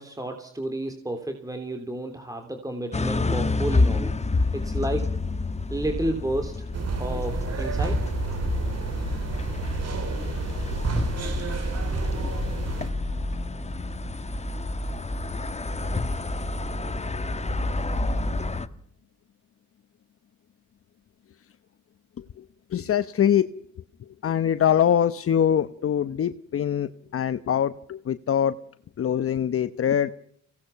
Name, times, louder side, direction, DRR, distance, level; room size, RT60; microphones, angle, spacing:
voice 1, 0.0-4.1 4.5-5.2 5.7-6.7 7.0-8.1, right 1 dB, 10° right, 5 dB, 3.3 m, -31 dB
sound 1, 2.9-18.7, left 2 dB, 20° left, 1.7 m, -28 dB
sound 2, 6.7-12.9, right 4 dB, 55° right, 4.6 m, -30 dB
voice 2, 22.7-23.5 24.2-28.5 29.0-30.2, left 9 dB, 50° left, 12 dB, 1.0 m, -23 dB
25.0 x 18.0 x 5.9 m, 0.67 s
supercardioid pair, 70°, 30 cm